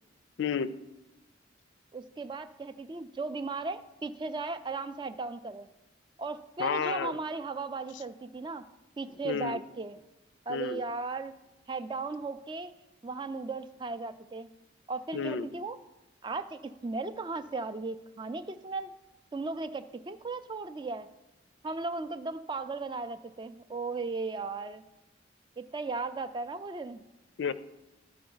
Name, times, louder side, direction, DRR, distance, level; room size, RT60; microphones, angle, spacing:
voice 1, 0.4-0.7 6.6-7.1 9.2-9.6 10.5-10.8 15.1-15.5 27.4-27.5, left 6 dB, 70° left, 14 dB, 0.4 m, -31 dB
voice 2, 1.9-5.7 6.2-8.6 9.0-10.0 10.5-11.3 11.7-12.7 13.0-14.5 14.9-15.8 16.2-18.9 19.3-21.1 21.6-24.8 25.6-27.0, right 3 dB, 25° right, 11 dB, 0.3 m, -36 dB
12.5 x 5.1 x 3.9 m, 1.0 s
head